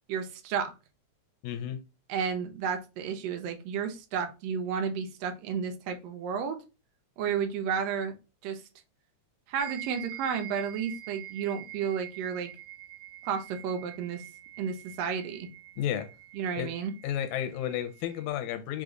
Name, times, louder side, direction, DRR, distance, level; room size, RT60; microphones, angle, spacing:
voice 1, 0.1-0.7 2.1-6.6 7.2-8.1 8.4-8.6 9.5-12.5 13.2-14.2 14.6-15.5 16.3-16.9, right 7 dB, 75° right, 1.6 m, -32 dB
voice 2, 1.4-1.8 15.8-16.1 16.5-16.7 17.0-18.8, left 10 dB, 80° left, 1.9 m, -32 dB
sound 1, 9.6-18.3, right 14 dB, 90° right, 2.1 m, -46 dB
4.9 x 2.3 x 3.8 m
omnidirectional pair, 3.5 m